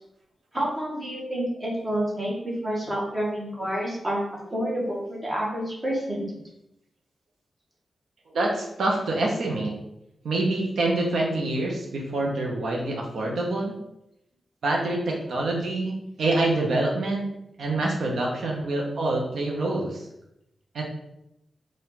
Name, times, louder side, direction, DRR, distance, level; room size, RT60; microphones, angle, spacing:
voice 1, 0.5-4.2 4.5-6.3, right 1 dB, 20° right, -3 dB, 1.1 m, -28 dB
voice 2, 8.3-9.7 10.2-13.8 14.6-17.3 17.6-20.1 20.7-20.8, right 2 dB, 80° right, -1 dB, 0.7 m, -26 dB
4.5 x 2.4 x 3.9 m, 0.83 s
wide cardioid pair, 150°, 0 cm